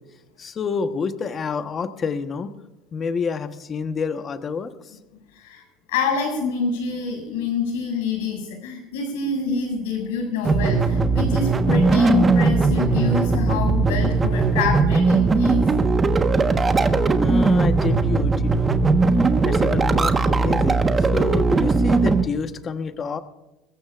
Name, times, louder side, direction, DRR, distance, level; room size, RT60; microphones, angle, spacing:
voice 1, 0.4-2.5 2.9-5.0 16.4-16.6 17.2-18.9 19.4-23.2, left 5 dB, 35° left, 9 dB, 1.1 m, -28 dB
voice 2, 5.9-15.6, left 4 dB, 90° left, 3 dB, 6.3 m, -26 dB
sound 1, 10.4-22.2, right 3 dB, 20° right, 1.3 m, -19 dB
23.0 x 14.5 x 2.5 m, 1.0 s
supercardioid pair, 110°, 0 cm